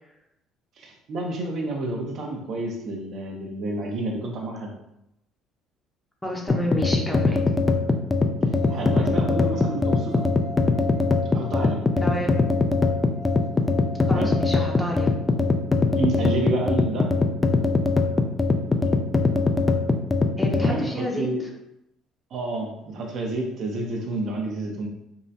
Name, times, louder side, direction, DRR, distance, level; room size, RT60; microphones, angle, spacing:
voice 1, 0.8-4.7 8.7-10.2 11.3-11.8 14.1-14.3 16.0-17.1 20.6-21.4 22.3-24.9, right 2 dB, 60° right, 0 dB, 0.7 m, -29 dB
voice 2, 6.2-7.4 9.7-10.0 12.0-12.3 14.1-15.1 20.4-21.3, equal, 10° left, 0 dB, 0.7 m, -30 dB
sound 1, 6.5-20.8, left 3 dB, 25° left, 0.3 m, -22 dB
sound 2, 8.5-15.6, equal, 60° left, 0.7 m, -40 dB
3.6 x 2.1 x 2.8 m, 0.81 s
supercardioid pair, 85°, 0 cm